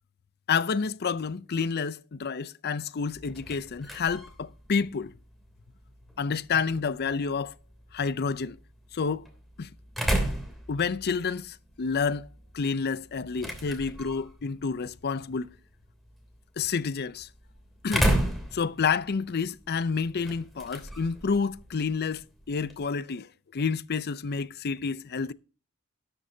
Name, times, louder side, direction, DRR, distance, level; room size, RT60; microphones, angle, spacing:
voice 1, 0.5-5.1 6.2-7.5 7.9-8.6 8.9-9.3 9.6-9.7 10.7-12.3 12.5-15.5 16.6-17.3 17.8-18.1 18.5-25.3, left 5 dB, 50° left, 0.5 m, -29 dB
sound 1, 3.1-22.9, right 1 dB, ahead, 3.0 m, -35 dB
12.5 x 11.5 x 2.7 m
head